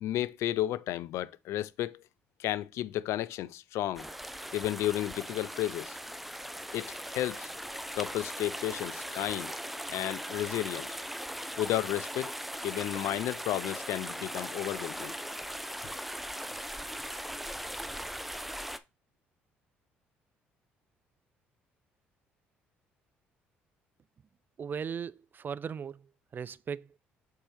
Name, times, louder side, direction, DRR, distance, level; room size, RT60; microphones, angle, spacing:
voice 1, 0.0-2.0 2.4-4.0 4.5-6.0 6.7-7.5 7.9-9.5 9.9-10.9 11.6-12.3 12.6-15.1, left 13 dB, 65° left, 0.4 m, -32 dB
sound 1, 4.0-18.8, equal, 5° right, 0.6 m, -39 dB
voice 2, 24.6-27.0, right 7 dB, 40° right, 0.4 m, -38 dB
7.4 x 4.4 x 3.3 m
hypercardioid pair, 55°, 5 cm